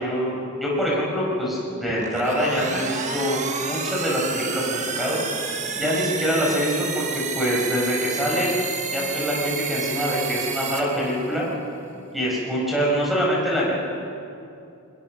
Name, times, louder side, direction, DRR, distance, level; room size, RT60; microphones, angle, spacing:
voice 1, 0.0-5.3 5.7-8.6 8.9-11.5 12.1-13.7, equal, ahead, -4 dB, 5.8 m, -24 dB
sound 1, 1.8-11.6, right 5 dB, 35° right, 1.5 m, -30 dB
22.0 x 20.5 x 6.6 m, 2.6 s
head